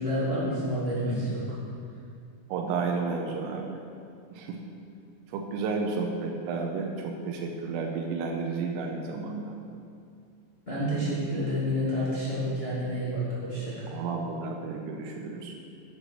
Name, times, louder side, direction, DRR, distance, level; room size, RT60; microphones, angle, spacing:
voice 1, 0.0-1.4 10.6-13.9, equal, 25° left, -10 dB, 1.4 m, -29 dB
voice 2, 2.5-3.8 4.3-4.6 5.3-9.6 13.9-15.5, right 4 dB, 90° right, 1 dB, 3.5 m, -32 dB
9.0 x 8.9 x 6.5 m, 2.4 s
omnidirectional pair, 6.0 m